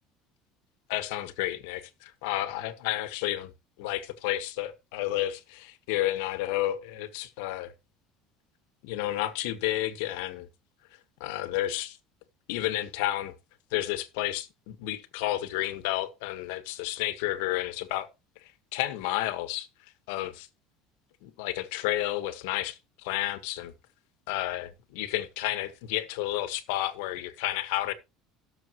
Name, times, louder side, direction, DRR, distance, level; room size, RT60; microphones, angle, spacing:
voice 1, 0.9-3.5 3.8-7.7 8.8-10.5 11.2-12.0 12.5-13.3 13.7-18.1 18.4-19.7 20.1-20.5 21.2-23.7 24.3-27.9, left 15 dB, 85° left, 1.5 m, -31 dB
17.5 x 7.0 x 3.0 m
cardioid pair, 160°, 0 cm